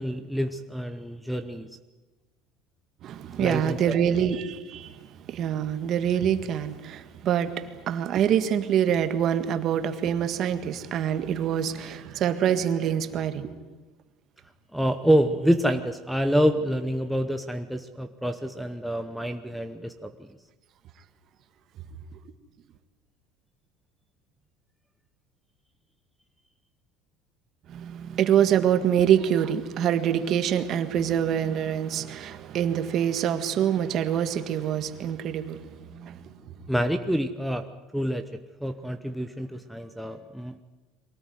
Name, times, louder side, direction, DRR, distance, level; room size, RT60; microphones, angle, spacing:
voice 1, 0.0-1.7 3.4-3.8 4.1-4.2 14.7-20.3 36.7-37.7 37.9-38.3 38.6-40.6, equal, ahead, 0.8 m, -27 dB
voice 2, 3.0-5.0 5.3-13.5 27.7-36.5, right 9 dB, 40° right, 1.7 m, -25 dB
23.5 x 18.5 x 9.5 m
cardioid pair, 160°, 0 cm